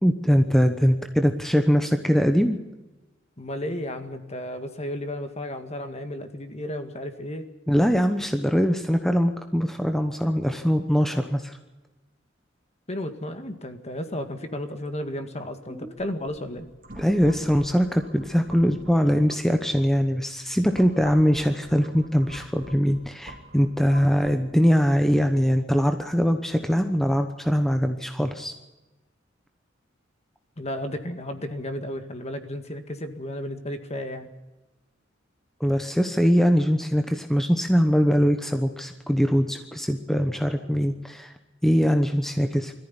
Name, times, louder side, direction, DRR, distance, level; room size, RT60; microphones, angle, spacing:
voice 1, 0.0-2.6 7.7-11.6 15.7-15.9 17.0-28.5 35.6-41.3 41.6-42.7, equal, ahead, 6 dB, 1.0 m, -22 dB
voice 2, 3.4-7.4 12.9-16.7 30.6-34.3, left 1 dB, 35° left, 8 dB, 2.0 m, -33 dB
sound 1, 16.0-19.9 20.4-24.3, right 1 dB, 45° right, 2.6 m, -46 dB
22.0 x 14.5 x 10.0 m, 1.1 s
head